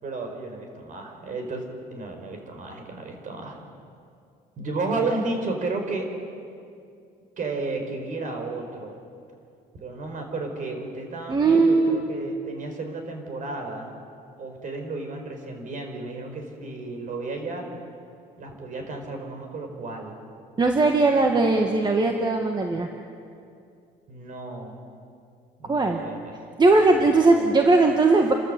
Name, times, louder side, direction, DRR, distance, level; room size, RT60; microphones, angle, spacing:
voice 1, 0.0-3.6 4.6-6.1 7.4-9.0 9.8-13.9 14.4-17.7 18.4-20.2 24.1-24.8 25.6-26.2 26.9-27.6, right 3 dB, 50° right, 4 dB, 5.0 m, -33 dB
voice 2, 11.3-12.0 20.6-22.9 25.7-26.0 26.6-28.3, right 3 dB, 25° right, 3 dB, 1.7 m, -19 dB
29.5 x 13.5 x 8.4 m, 2.4 s
cardioid pair, 110°, 17 cm